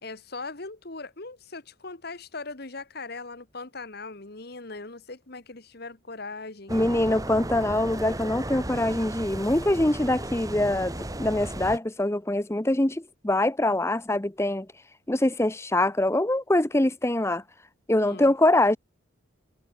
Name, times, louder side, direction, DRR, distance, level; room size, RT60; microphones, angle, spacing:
voice 1, 0.0-6.7 18.0-18.3, left 3 dB, 50° left, 1.6 m, -39 dB
voice 2, 6.7-14.7 15.1-17.4 17.9-18.8, left 1 dB, 15° left, 0.8 m, -24 dB
sound 1, 6.7-11.8, right 1 dB, 15° right, 1.7 m, -35 dB
head